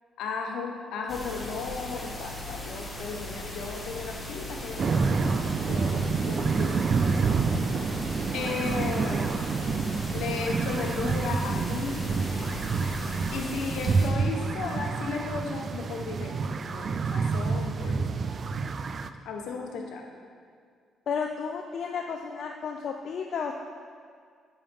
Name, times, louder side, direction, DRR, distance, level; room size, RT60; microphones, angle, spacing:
voice 1, 0.2-5.1 5.7-6.8 8.3-9.4 10.1-12.0 13.3-16.4 16.6-18.1 19.2-20.0, left 4 dB, 80° left, 2 dB, 1.0 m, -35 dB
sound 1, 1.1-14.1, left 1 dB, 15° left, 1.4 m, -38 dB
sound 2, 4.8-19.1, right 5 dB, 45° right, 0.3 m, -28 dB
voice 2, 7.5-7.9 21.1-23.5, left 6 dB, 60° left, 2 dB, 0.4 m, -33 dB
9.8 x 5.5 x 3.5 m, 2.1 s
cardioid pair, 90°, 0 cm